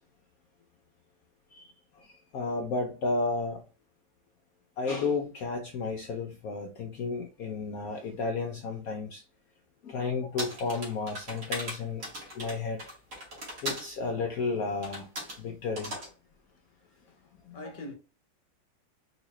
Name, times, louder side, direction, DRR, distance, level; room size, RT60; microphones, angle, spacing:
voice 1, 1.5-3.7 4.8-9.2 9.8-12.1 12.3-13.0 13.6-15.1 15.4-16.0 17.4-17.6, left 4 dB, 75° left, 0.8 m, -32 dB
sound 1, 10.4-13.9 14.8-15.4 15.8-16.1, equal, 45° right, 1.6 m, -38 dB
voice 2, 16.7-17.9, left 1 dB, 55° left, 0.4 m, -45 dB
4.0 x 2.7 x 3.0 m
omnidirectional pair, 2.1 m